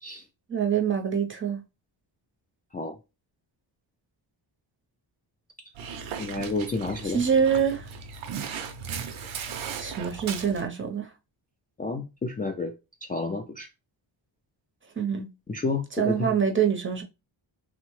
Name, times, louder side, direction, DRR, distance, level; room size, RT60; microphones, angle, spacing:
voice 1, 0.5-1.6 7.0-7.9 9.8-11.1 15.0-15.3 16.0-17.0, right 7 dB, 25° right, 0.6 m, -25 dB
Dog, 5.7-10.7, right 6 dB, 90° right, 0.6 m, -37 dB
voice 2, 6.2-7.2 11.8-12.7 13.0-13.7 15.5-16.4, left 3 dB, 20° left, 0.3 m, -30 dB
2.9 x 2.1 x 3.0 m
wide cardioid pair, 105°, 46 cm